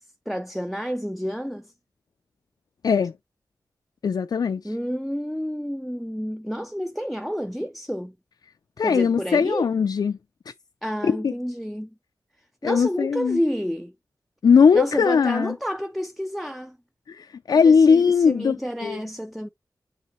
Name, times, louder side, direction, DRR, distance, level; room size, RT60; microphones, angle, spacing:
voice 1, 0.3-1.7 4.6-8.1 8.8-9.7 10.8-12.0 12.6-13.9 14.7-16.8 17.5-19.5, equal, ahead, 0.6 m, -30 dB
voice 2, 4.0-4.6 8.8-10.2 11.0-11.3 12.6-13.4 14.4-15.5 17.1-18.6 18.8-19.0, left 6 dB, 65° left, 0.4 m, -19 dB
8.3 x 3.9 x 3.1 m
wide cardioid pair, 105°, 7 cm